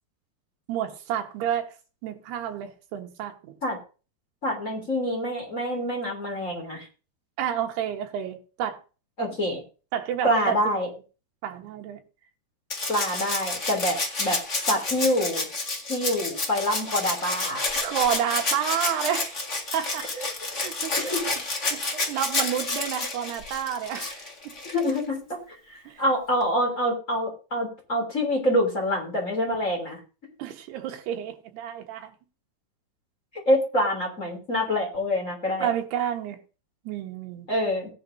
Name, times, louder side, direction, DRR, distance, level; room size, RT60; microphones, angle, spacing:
voice 1, 0.7-1.7 2.0-3.5 7.4-8.8 9.9-10.6 11.4-12.0 17.8-19.4 19.7-21.2 21.7-21.8 22.1-24.2 25.9-26.0 30.4-32.1 35.6-36.4 36.9-37.5, right 9 dB, 75° right, 3.4 m, -30 dB
voice 2, 4.4-6.9 9.2-9.6 10.2-10.9 12.9-14.4 14.7-15.4 15.9-17.6 20.4-20.6 21.0-21.3 24.7-25.2 25.5-30.0 33.5-35.7 37.5-37.9, equal, 20° left, 3.0 m, -26 dB
Rattle (instrument), 12.7-25.0 26.4-26.5, left 3 dB, 40° left, 1.1 m, -30 dB
17.5 x 10.5 x 2.7 m
omnidirectional pair, 4.8 m